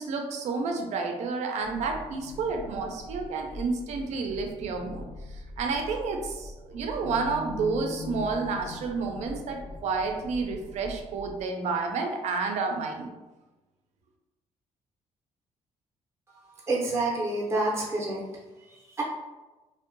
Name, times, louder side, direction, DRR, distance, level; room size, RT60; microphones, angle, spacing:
voice 1, 0.0-13.1, right 4 dB, 70° right, 3 dB, 0.4 m, -30 dB
sound 1, 1.6-11.4, left 2 dB, 40° left, 0.4 m, -42 dB
voice 2, 16.7-18.2 18.7-19.0, right 2 dB, 20° right, -4 dB, 0.6 m, -28 dB
2.6 x 2.1 x 2.5 m, 1.1 s
cardioid pair, 105°, 12 cm